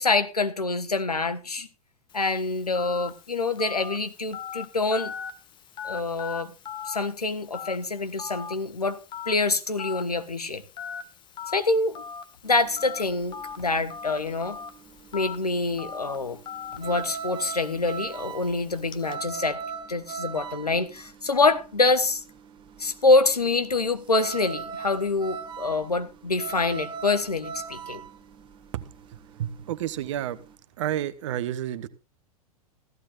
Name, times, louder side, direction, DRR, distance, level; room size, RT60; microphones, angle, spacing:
voice 1, 0.0-1.7 2.1-5.1 5.8-6.5 6.8-9.0 9.3-10.6 11.5-12.0 12.4-14.6 15.1-16.4 16.8-19.6 19.9-22.2 22.8-28.0, left 3 dB, 80° left, 1.4 m, -25 dB
Telephone, 2.1-19.1, left 7 dB, 25° left, 1.3 m, -41 dB
sound 1, 12.5-30.5, right 6 dB, 25° right, 1.7 m, -39 dB
voice 2, 29.4-30.4 30.8-31.9, right 11 dB, 50° right, 1.1 m, -30 dB
16.5 x 15.0 x 2.5 m
figure-of-eight pair, 95°, 20 cm